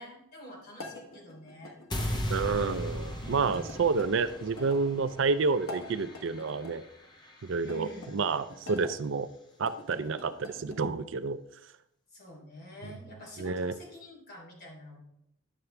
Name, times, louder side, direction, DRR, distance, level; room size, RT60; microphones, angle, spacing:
voice 1, 0.0-1.7 3.2-3.7 7.6-8.2 12.1-15.0, left 1 dB, 45° left, -2 dB, 3.4 m, -47 dB
sound 1, 0.7-2.8 3.5-4.8 5.5-6.8 7.6-8.9 9.5-10.9, left 1 dB, 70° left, 1.4 m, -46 dB
sound 2, 1.9-8.1, equal, 20° left, 0.8 m, -38 dB
voice 2, 2.3-6.8 7.4-9.3 9.6-11.4 12.8-13.0 13.4-13.7, right 4 dB, 60° right, 13 dB, 0.4 m, -29 dB
11.0 x 6.9 x 3.3 m, 0.77 s
head